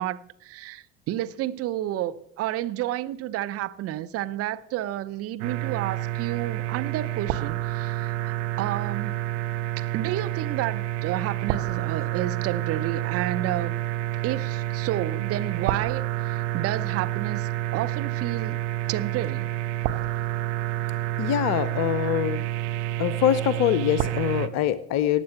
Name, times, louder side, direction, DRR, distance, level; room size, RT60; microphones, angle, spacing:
voice 1, 0.0-9.2 9.8-13.8 14.2-18.6 18.9-19.5 22.1-22.2, right 13 dB, 35° right, 0.7 m, -31 dB
sound 1, 5.4-24.5, right 14 dB, 55° right, 1.0 m, -29 dB
voice 2, 21.2-22.4 23.0-25.2, left 11 dB, 40° left, 0.7 m, -24 dB
14.0 x 9.2 x 6.9 m
figure-of-eight pair, 65°, 40 cm